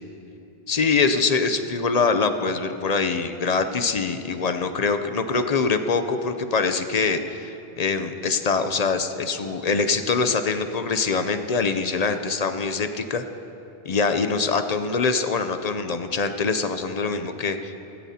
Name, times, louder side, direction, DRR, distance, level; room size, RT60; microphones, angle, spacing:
voice 1, 0.7-13.2 13.9-17.7, left 4 dB, 45° left, 8 dB, 0.6 m, -24 dB
17.5 x 14.0 x 2.8 m, 2.9 s
omnidirectional pair, 1.1 m